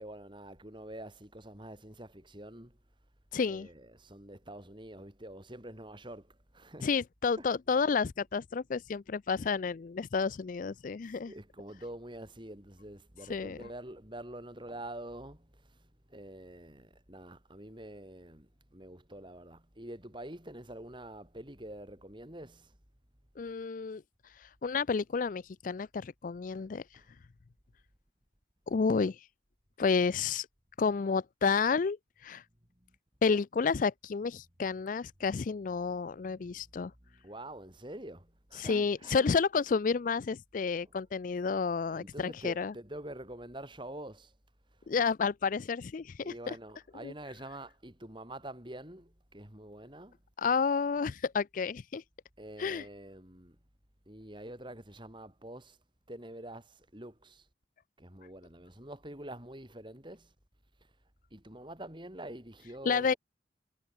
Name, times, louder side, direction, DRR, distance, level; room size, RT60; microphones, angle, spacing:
voice 1, 0.0-2.8 3.5-7.0 7.4-7.5 11.2-22.8 26.4-26.5 26.9-27.1 32.7-32.9 36.2-36.6 37.0-39.3 41.9-44.3 44.8-44.9 46.2-50.2 52.4-53.6 54.1-55.8 56.1-57.5 58.0-60.3 61.3-63.2, right 1 dB, 25° right, 4.9 m, -46 dB
voice 2, 3.3-3.7 6.8-11.3 13.3-13.7 23.4-24.0 24.4-26.8 28.7-29.3 29.8-30.5 30.8-32.0 32.2-32.4 33.2-36.9 38.6-42.7 44.9-46.5 47.0-47.1 50.4-52.0 52.6-52.9 62.9-63.1, left 5 dB, 45° left, 0.4 m, -30 dB
head